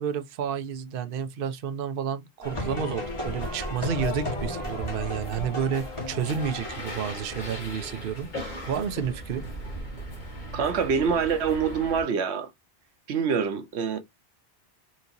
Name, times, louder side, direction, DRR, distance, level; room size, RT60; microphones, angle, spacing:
voice 1, 0.0-9.4, right 8 dB, 60° right, 0.8 m, -31 dB
sound 1, 2.4-7.6, left 1 dB, 30° left, 1.4 m, -34 dB
sound 2, 3.0-12.0, equal, 45° left, 1.4 m, -39 dB
voice 2, 10.5-12.5 13.1-14.0, right 6 dB, 85° right, 1.0 m, -25 dB
4.4 x 2.8 x 2.6 m
omnidirectional pair, 1.1 m